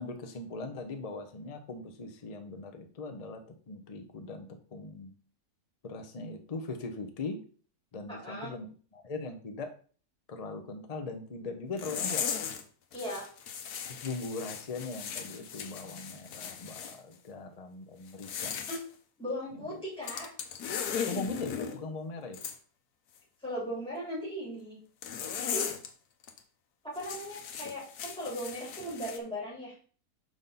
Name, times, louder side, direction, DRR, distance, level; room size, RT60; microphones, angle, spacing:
voice 1, 0.0-4.5 4.7-5.1 5.8-7.4 7.9-9.7 10.3-12.3 13.9-18.5 19.5-19.6 21.0-22.4, left 3 dB, 45° left, 6 dB, 0.4 m, -40 dB
voice 2, 8.1-8.5 12.9-13.3 18.7-18.8 19.2-20.3 21.6-21.7 23.4-24.8 25.4-25.7 26.8-29.8, equal, 5° left, -7 dB, 3.8 m, -38 dB
sound 1, 11.8-12.6 12.9-17.0 18.1-18.8 20.0-21.8 22.3-22.6 25.0-25.9 26.2-26.4 27.0-29.2, left 7 dB, 75° left, 1.3 m, -37 dB
6.2 x 5.3 x 4.0 m, 0.41 s
omnidirectional pair, 1.7 m